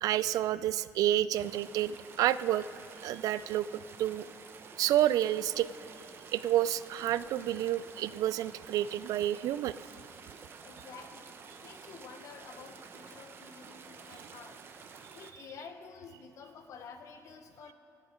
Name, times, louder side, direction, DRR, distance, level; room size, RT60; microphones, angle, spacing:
voice 1, 0.0-2.7 3.0-4.3 4.8-5.7 6.3-9.8, right 12 dB, 75° right, 16 dB, 0.3 m, -29 dB
sound 1, 1.3-15.3, right 5 dB, 40° right, 0.7 m, -50 dB
voice 2, 10.6-14.6 15.1-17.7, left 5 dB, 55° left, 6 dB, 1.0 m, -50 dB
26.0 x 9.1 x 3.7 m, 2.6 s
cardioid pair, 165°, 6 cm